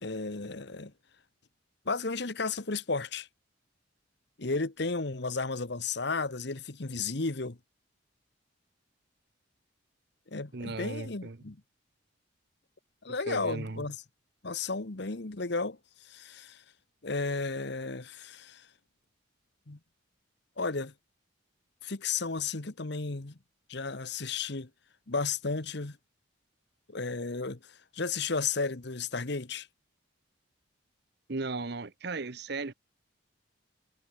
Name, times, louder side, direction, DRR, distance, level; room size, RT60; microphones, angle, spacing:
voice 1, 0.0-0.9 1.8-3.3 4.4-7.6 10.3-11.6 13.0-14.0 14.4-16.6 17.0-18.7 19.7-19.8 20.6-20.9 21.8-23.4 23.7-24.7 25.1-26.0 26.9-29.7, left 4 dB, 55° left, 1.2 m, -33 dB
voice 2, 10.5-11.4 13.3-13.9 31.3-32.7, right 3 dB, 55° right, 0.9 m, -36 dB
head